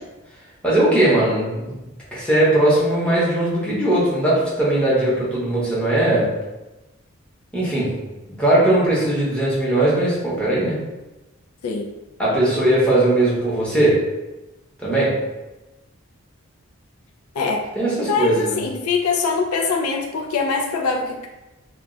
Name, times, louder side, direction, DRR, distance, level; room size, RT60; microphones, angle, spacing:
voice 1, 0.6-1.7 2.1-6.3 7.5-7.9 8.4-10.8 12.2-14.0 14.8-15.2 17.8-18.6, right 1 dB, 5° left, -8 dB, 0.8 m, -19 dB
voice 2, 17.3-17.7 18.0-21.3, left 4 dB, 90° left, 2 dB, 0.4 m, -23 dB
2.3 x 2.1 x 3.7 m, 1.1 s
head